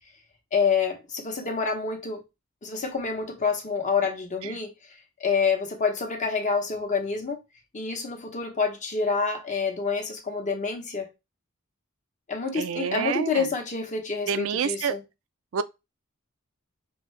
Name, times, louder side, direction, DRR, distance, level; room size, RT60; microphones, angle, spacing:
voice 1, 0.5-2.2 2.6-4.7 5.2-7.4 7.7-11.1 12.3-15.0, left 5 dB, 35° left, 1.0 m, -27 dB
voice 2, 12.5-13.5 14.3-14.9 15.5-15.6, right 7 dB, 65° right, 0.4 m, -28 dB
5.6 x 2.7 x 3.2 m
head